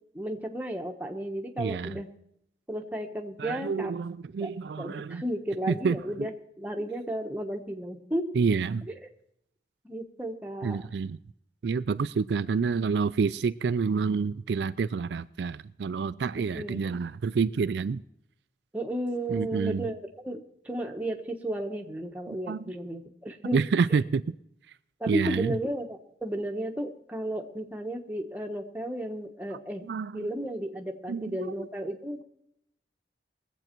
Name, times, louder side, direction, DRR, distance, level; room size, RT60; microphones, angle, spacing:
voice 1, 0.1-2.1 2.7-3.9 4.4-8.4 9.8-10.9 16.5-16.8 18.7-23.6 23.9-24.0 25.0-29.9 30.1-32.2, right 1 dB, 10° right, 1.1 m, -33 dB
voice 2, 1.6-2.0 3.4-5.2 5.7-6.3 8.3-8.9 10.6-11.2 11.6-18.0 19.3-19.9 22.3-22.6 23.5-24.2 25.1-25.6 29.9-30.3 31.1-31.7, right 5 dB, 75° right, 0.4 m, -28 dB
21.5 x 7.9 x 4.5 m
head